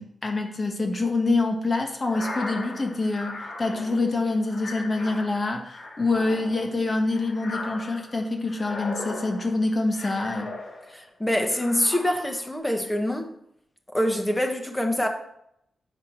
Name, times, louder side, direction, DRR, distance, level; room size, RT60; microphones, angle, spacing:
voice 1, 0.0-10.5, left 3 dB, 30° left, 1.3 m, -26 dB
sound 1, 2.0-11.1 11.5-12.5, left 2 dB, 55° left, 2.4 m, -38 dB
voice 2, 10.9-13.3 13.9-15.1, left 1 dB, 10° left, 1.2 m, -25 dB
8.2 x 4.7 x 6.0 m
wide cardioid pair, 125°, 0 cm